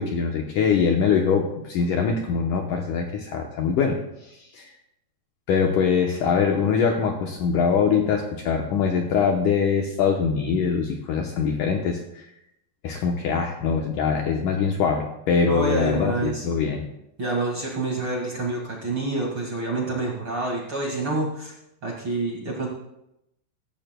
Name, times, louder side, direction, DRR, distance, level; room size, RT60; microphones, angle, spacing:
voice 1, 0.0-4.7 5.5-12.3 12.8-16.8, left 6 dB, 70° left, 1 dB, 2.1 m, -23 dB
voice 2, 15.5-16.5 17.2-21.5 21.8-22.7, right 2 dB, 40° right, -2 dB, 2.0 m, -27 dB
16.0 x 14.5 x 2.2 m, 0.84 s
omnidirectional pair, 4.6 m